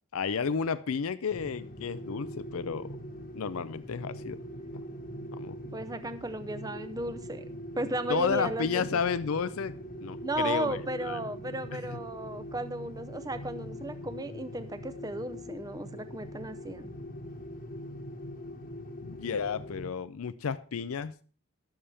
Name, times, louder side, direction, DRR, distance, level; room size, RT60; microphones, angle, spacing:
voice 1, 0.1-2.9 3.3-4.4 4.7-4.8 5.3-5.6 8.1-9.7 10.0-11.2 19.0-21.1, left 6 dB, 75° left, 15 dB, 0.5 m, -32 dB
sound 1, 1.3-19.9, equal, 40° left, 1.3 m, -42 dB
voice 2, 5.7-7.5 7.8-8.8 10.2-16.9, right 1 dB, 15° right, 11 dB, 0.6 m, -35 dB
20.0 x 7.1 x 3.4 m, 0.39 s
head